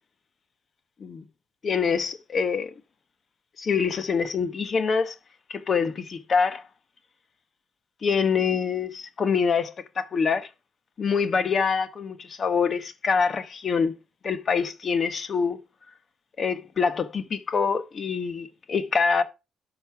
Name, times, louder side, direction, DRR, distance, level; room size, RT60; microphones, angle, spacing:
voice 1, 1.6-2.7 3.6-5.1 5.5-6.6 8.0-10.5 11.0-13.9 14.2-15.6 16.4-19.2, left 5 dB, 45° left, 1.0 m, -25 dB
12.0 x 5.3 x 4.6 m
cardioid pair, 90°, 0 cm